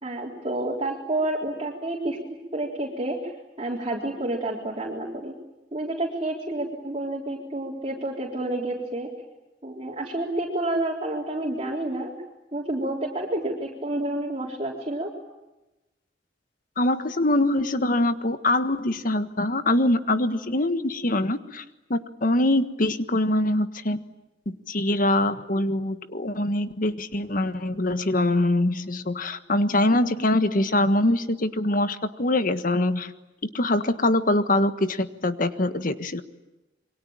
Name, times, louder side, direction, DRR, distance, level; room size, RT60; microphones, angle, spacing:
voice 1, 0.0-2.2 2.5-3.3 3.6-5.3 5.7-9.1 9.6-12.1 12.5-15.1, right 1 dB, 35° right, -3 dB, 3.8 m, -29 dB
voice 2, 16.8-21.6 21.9-24.0 24.5-33.1 33.5-36.2, left 1 dB, 50° left, 10 dB, 1.5 m, -23 dB
27.5 x 24.0 x 8.9 m, 1.0 s
head